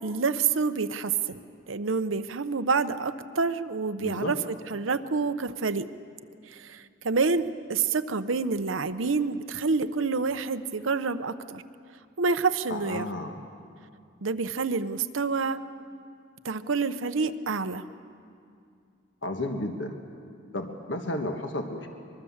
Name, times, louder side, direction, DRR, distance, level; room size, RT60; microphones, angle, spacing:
voice 1, 0.0-1.4 1.7-5.9 6.5-11.6 12.2-13.1 14.2-15.6 16.4-17.8, right 4 dB, 90° right, 10 dB, 0.8 m, -28 dB
voice 2, 4.0-4.4 12.7-13.4 19.2-20.0 20.5-21.9, left 1 dB, 65° left, 5 dB, 1.5 m, -32 dB
24.0 x 22.5 x 7.3 m, 2.4 s
head